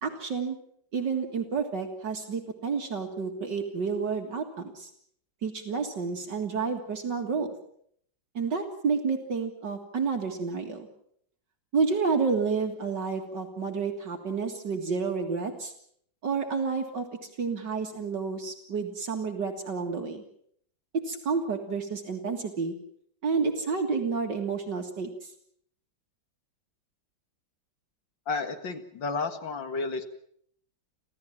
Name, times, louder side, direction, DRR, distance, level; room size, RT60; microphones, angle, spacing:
voice 1, 0.0-0.6 0.9-4.9 5.4-7.5 8.3-10.9 11.7-15.7 16.2-17.1 17.4-20.2 20.9-22.7 23.2-25.3, right 5 dB, 60° right, 5 dB, 2.5 m, -30 dB
voice 2, 28.3-30.0, left 4 dB, 65° left, 7 dB, 2.6 m, -32 dB
26.0 x 15.5 x 7.3 m, 0.66 s
omnidirectional pair, 2.2 m